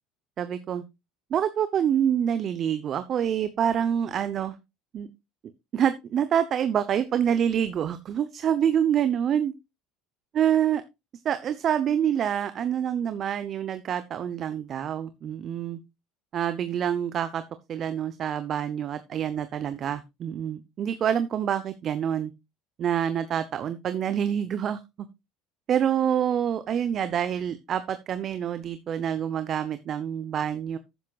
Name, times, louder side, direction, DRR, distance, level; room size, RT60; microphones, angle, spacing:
voice 1, 0.4-0.8 1.3-4.6 4.9-5.1 5.7-9.5 10.3-10.8 11.2-15.8 16.3-17.4 17.7-22.3 22.8-25.1 25.7-30.8, right 9 dB, 45° right, 12 dB, 0.9 m, -26 dB
12.0 x 9.5 x 2.4 m, 0.23 s
hypercardioid pair, 80°, 0 cm